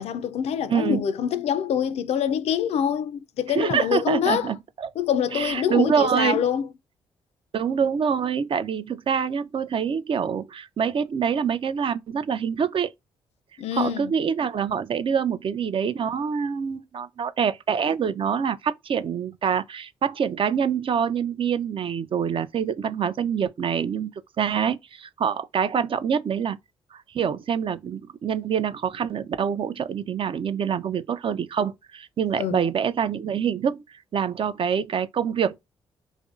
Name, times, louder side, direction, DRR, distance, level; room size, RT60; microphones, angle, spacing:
voice 1, 0.0-4.5 5.0-6.7 13.6-14.1 32.4-32.6, left 9 dB, 65° left, 0.4 m, -25 dB
voice 2, 0.7-1.0 3.6-4.9 5.3-6.5 7.5-12.9 13.7-24.1 24.4-26.6 26.9-33.8 34.1-35.6, right 7 dB, 50° right, 0.4 m, -25 dB
2.5 x 2.0 x 2.4 m
hypercardioid pair, 45°, 12 cm